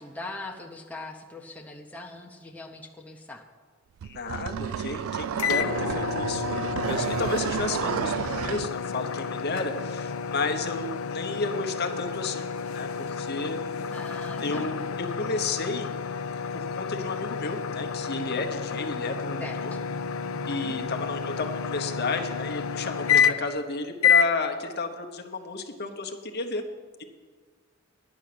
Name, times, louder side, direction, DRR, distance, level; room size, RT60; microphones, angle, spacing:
voice 1, 0.0-3.4 13.9-14.7 19.4-19.8 20.3-20.8, left 2 dB, 5° left, 0 dB, 0.8 m, -41 dB
voice 2, 4.0-12.5 12.7-13.6 14.4-15.9 16.5-19.7 20.5-26.6 27.0-27.1, left 3 dB, 50° left, 4 dB, 1.0 m, -32 dB
sound 1, 4.0-8.7, right 8 dB, 70° right, 0.3 m, -31 dB
sound 2, 5.4-23.6 24.0-24.3, left 7 dB, 70° left, 0.5 m, -29 dB
10.5 x 6.2 x 8.6 m, 1.5 s
head